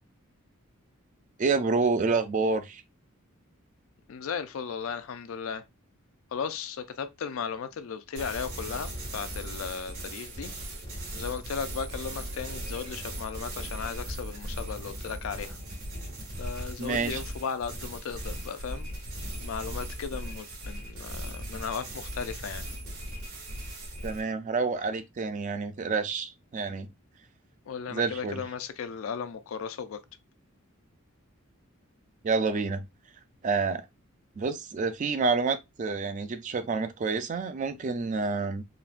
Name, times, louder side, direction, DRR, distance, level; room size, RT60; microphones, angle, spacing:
voice 1, 1.4-2.8 16.8-17.2 24.0-26.9 27.9-28.4 32.2-32.8 33.4-33.8 34.4-38.6, right 4 dB, 35° right, 0.3 m, -28 dB
voice 2, 4.1-5.6 6.3-10.5 11.2-15.6 16.4-18.9 19.4-22.6 27.7-30.0, left 6 dB, 65° left, 0.4 m, -36 dB
sound 1, 8.1-24.2, right 1 dB, 80° right, 1.7 m, -38 dB
3.8 x 2.1 x 2.4 m
head